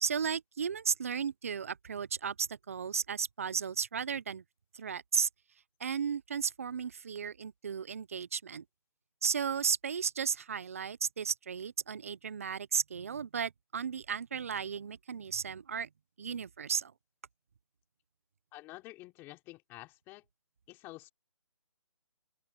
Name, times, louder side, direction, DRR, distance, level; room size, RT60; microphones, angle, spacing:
voice 1, 0.0-4.4 4.7-5.3 5.8-8.6 9.2-15.9 16.2-16.9, right 7 dB, 25° right, 0.4 m, -34 dB
voice 2, 18.5-20.2 20.7-21.1, left 19 dB, 15° left, 4.6 m, -49 dB
open air
hypercardioid pair, 170°, 16 cm